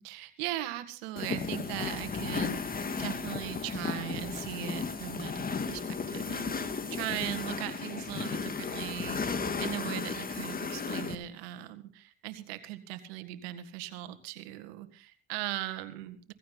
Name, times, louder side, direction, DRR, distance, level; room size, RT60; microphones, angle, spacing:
voice 1, 0.0-16.3, right 14 dB, 85° right, 10 dB, 1.9 m, -39 dB
sound 1, 1.2-11.2, left 5 dB, 30° left, 2.0 m, -34 dB
17.0 x 16.0 x 4.0 m, 0.36 s
supercardioid pair, 75°, 30 cm